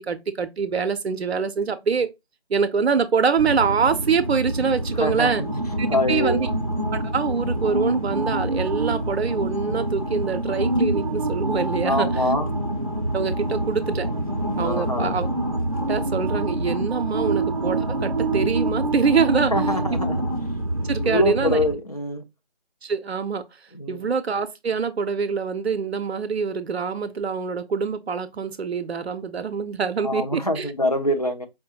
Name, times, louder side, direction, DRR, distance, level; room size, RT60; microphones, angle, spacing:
voice 1, 0.1-2.1 2.5-5.4 5.8-6.5 6.9-12.2 13.1-14.1 14.6-15.3 15.9-19.5 19.9-20.0 20.8-21.6 22.8-23.4 23.9-30.7, right 5 dB, 80° right, 0.5 m, -25 dB
sound 1, 3.4-21.7, right 1 dB, 35° right, 0.5 m, -26 dB
voice 2, 5.0-5.5 5.9-6.5 11.8-12.5 14.6-15.1 19.5-20.2 21.0-22.2 23.7-24.1 30.0-31.5, left 1 dB, 40° left, 0.5 m, -24 dB
4.5 x 2.1 x 2.7 m
figure-of-eight pair, 175°, 31 cm